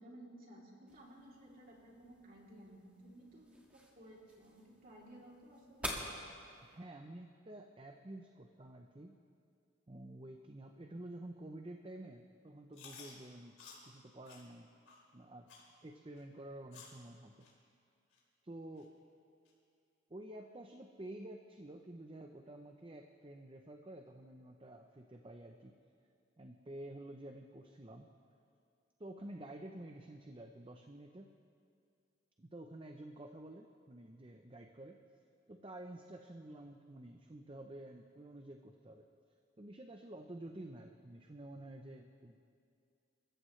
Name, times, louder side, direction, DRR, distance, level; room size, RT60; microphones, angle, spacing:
voice 1, 0.0-5.9, right 1 dB, 45° right, -3 dB, 3.1 m, -56 dB
sound 1, 0.9-6.8, equal, 5° right, 1.8 m, -49 dB
voice 2, 6.6-9.2 9.9-13.5 13.9-14.7 15.1-15.5 15.8-17.5 18.4-18.9 20.1-25.7 26.4-28.1 29.0-31.3 32.4-35.0 35.5-39.1 39.6-42.4, right 1 dB, 25° right, 4 dB, 0.6 m, -50 dB
Chewing mastication, 12.7-13.1 13.6-13.8 14.2-14.4 14.8-15.0 15.5-15.7 16.2-16.3 16.7-17.0 17.4-17.5 18.1-18.2 18.8-18.9 19.4-19.5, left 5 dB, 90° left, 3.9 m, -54 dB
28.0 x 14.5 x 3.2 m, 2.3 s
head